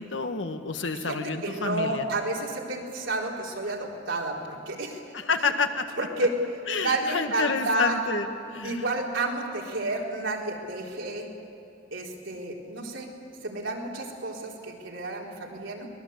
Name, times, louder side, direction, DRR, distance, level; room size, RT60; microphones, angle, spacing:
voice 1, 0.0-2.1 5.1-5.8 6.7-8.8, left 4 dB, 80° left, 7 dB, 1.6 m, -29 dB
voice 2, 0.9-5.0 6.0-6.4 6.7-8.0 8.6-11.3 11.9-13.1 13.4-15.9, right 2 dB, 85° right, -2 dB, 4.1 m, -30 dB
23.5 x 21.0 x 8.2 m, 2.7 s
head